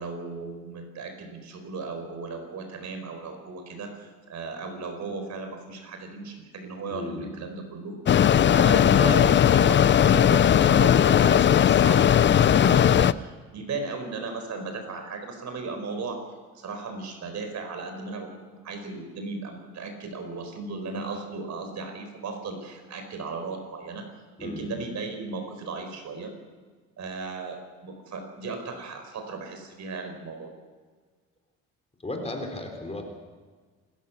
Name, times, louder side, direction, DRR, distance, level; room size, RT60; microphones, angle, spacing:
voice 1, 0.0-7.9 8.4-16.3 16.5-24.1 24.4-26.3 27.0-30.5, right 4 dB, 55° right, 6 dB, 4.6 m, -36 dB
voice 2, 6.9-7.3 24.4-24.7 32.0-33.0, left 2 dB, 20° left, 3 dB, 4.0 m, -35 dB
Mechanisms, 8.1-13.1, left 9 dB, 35° left, 0.5 m, -18 dB
28.0 x 13.5 x 7.1 m, 1.5 s
cardioid pair, 105°, 33 cm